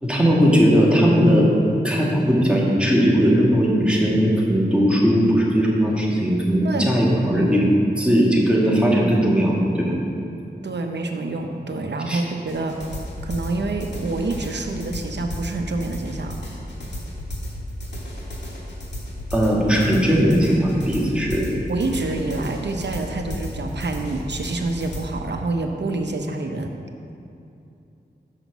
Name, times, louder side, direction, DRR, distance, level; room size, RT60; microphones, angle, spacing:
voice 1, 0.0-1.5 1.8-7.6 8.0-9.9 12.1-12.2 19.3-21.5, equal, 5° right, -4 dB, 1.7 m, -18 dB
voice 2, 6.6-7.0 7.2-7.5 9.9-10.3 10.6-12.8 13.2-16.4 21.7-26.7, right 2 dB, 80° right, 4 dB, 0.8 m, -27 dB
sound 1, 12.5-25.0, equal, 85° left, 1.7 m, -33 dB
6.4 x 5.8 x 7.1 m, 2.6 s
wide cardioid pair, 80°, 18 cm